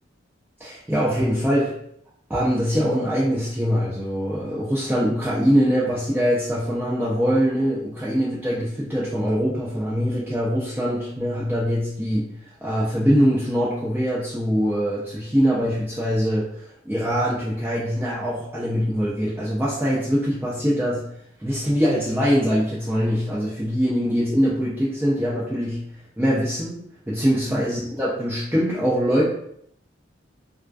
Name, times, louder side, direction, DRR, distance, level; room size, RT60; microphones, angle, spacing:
voice 1, 0.6-1.7 2.3-12.3 12.6-21.1 21.4-25.8 26.2-29.2, equal, 10° right, -8 dB, 0.4 m, -23 dB
2.4 x 2.3 x 2.2 m, 0.70 s
head